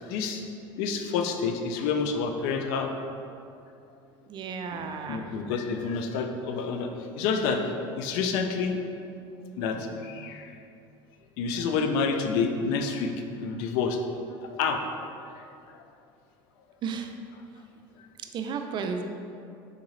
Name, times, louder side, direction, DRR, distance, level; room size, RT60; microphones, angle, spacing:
voice 1, 0.1-0.4 0.8-2.9 5.1-6.9 7.2-7.6 8.0-8.8 9.6-9.8 10.0-10.5 11.4-13.1 13.4-14.0 14.5-14.8, left 5 dB, 75° left, 5 dB, 0.4 m, -28 dB
voice 2, 4.3-5.3 9.7-10.1 16.8-17.1 18.3-19.0, right 5 dB, 40° right, 5 dB, 0.4 m, -34 dB
3.8 x 3.6 x 3.1 m, 2.5 s
supercardioid pair, 105°, 12 cm